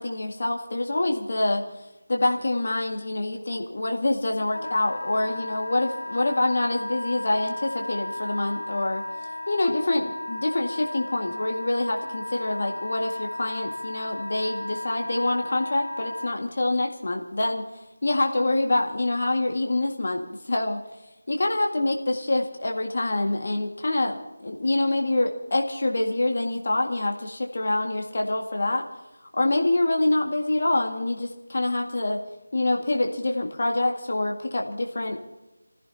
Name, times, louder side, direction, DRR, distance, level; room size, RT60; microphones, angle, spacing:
voice 1, 0.0-1.6 2.1-9.1 9.5-17.6 18.0-20.8 21.3-28.9 29.3-32.2 32.5-35.2, left 2 dB, 50° left, 2 dB, 1.9 m, -26 dB
Wind instrument woodwind instrument, 4.5-16.3, left 1 dB, 70° left, 4.5 m, -35 dB
27.5 x 16.0 x 2.8 m, 1.0 s
figure-of-eight pair, 165°, 0 cm